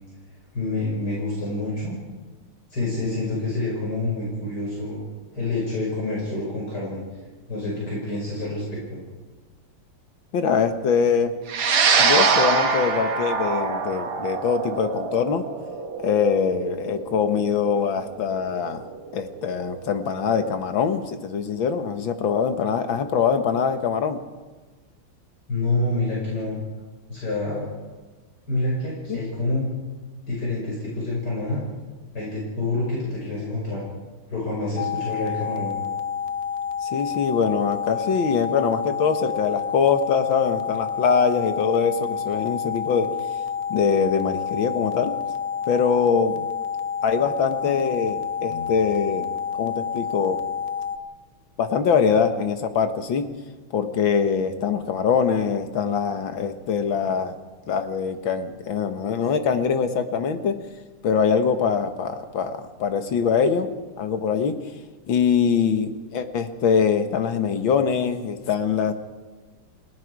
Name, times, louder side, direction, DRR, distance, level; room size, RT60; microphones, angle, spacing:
voice 1, 0.5-2.0 2.7-5.0 5.3-7.0 7.5-9.0 25.5-26.6 27.1-27.7 28.5-29.6 30.3-31.6 32.1-33.8 34.3-35.7, left 2 dB, 45° left, -5 dB, 6.3 m, -27 dB
voice 2, 10.3-11.3 12.0-15.5 16.0-18.8 19.1-24.2 29.1-29.2 36.8-43.1 43.7-45.1 45.7-46.5 47.0-49.3 49.6-50.4 51.6-53.3 53.7-57.4 57.7-60.6 61.0-63.7 64.0-64.6 65.1-68.9, left 6 dB, 65° left, 8 dB, 2.1 m, -23 dB
sound 1, 11.5-20.0, right 5 dB, 80° right, 2.6 m, -24 dB
sound 2, 34.8-51.0, left 7 dB, 90° left, 1.8 m, -29 dB
29.5 x 18.5 x 4.8 m, 1.3 s
omnidirectional pair, 2.4 m